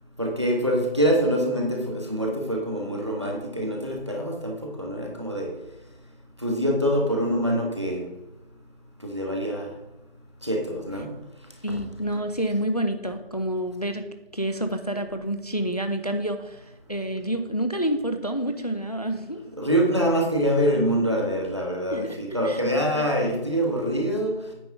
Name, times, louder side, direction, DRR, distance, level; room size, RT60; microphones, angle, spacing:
voice 1, 0.2-5.5 6.4-8.0 9.0-9.7 10.4-11.1 11.7-11.8 19.6-24.4, equal, 30° right, 1 dB, 1.0 m, -25 dB
voice 2, 11.6-14.0 14.3-19.4 21.9-22.2 22.4-22.6 23.3-23.4, right 1 dB, 40° left, 8 dB, 0.5 m, -28 dB
9.1 x 3.5 x 5.7 m, 1.0 s
figure-of-eight pair, 180°, 30 cm